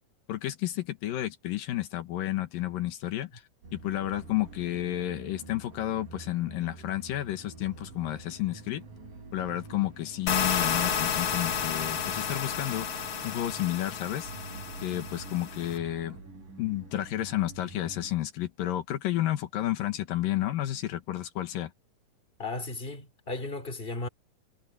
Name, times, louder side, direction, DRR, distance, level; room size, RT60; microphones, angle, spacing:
voice 1, 0.3-3.4 3.7-8.8 9.3-12.9 13.2-14.3 14.8-16.2 16.6-21.7, left 14 dB, 85° left, 3.1 m, -31 dB
sound 1, 3.6-18.1, right 3 dB, 75° right, 7.9 m, -47 dB
sound 2, 3.9-16.2, right 5 dB, 55° right, 5.4 m, -57 dB
sound 3, 10.3-15.8, left 7 dB, 50° left, 2.1 m, -31 dB
voice 2, 22.4-24.1, left 2 dB, 15° left, 3.6 m, -35 dB
omnidirectional pair, 3.9 m